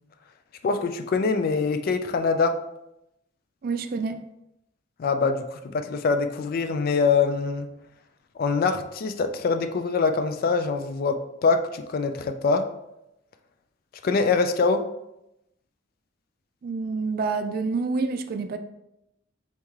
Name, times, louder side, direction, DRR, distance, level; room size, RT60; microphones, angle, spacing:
voice 1, 0.6-2.6 5.0-7.7 8.4-12.7 14.0-14.9, left 4 dB, 50° left, 8 dB, 0.3 m, -24 dB
voice 2, 3.6-4.2 16.6-18.6, right 4 dB, 50° right, 9 dB, 0.3 m, -27 dB
4.1 x 3.1 x 3.6 m, 0.87 s
head